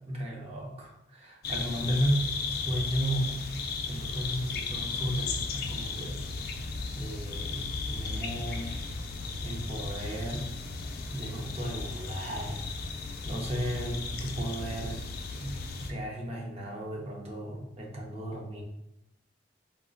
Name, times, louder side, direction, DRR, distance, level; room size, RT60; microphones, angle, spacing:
voice 1, 0.0-3.5 3.9-6.3 7.0-8.8 9.4-10.5 11.1-12.7 13.2-15.0 15.4-18.6, equal, 35° right, -1 dB, 0.6 m, -34 dB
sound 1, 1.4-15.9, left 4 dB, 55° left, 0.3 m, -35 dB
3.4 x 2.4 x 2.5 m, 0.81 s
head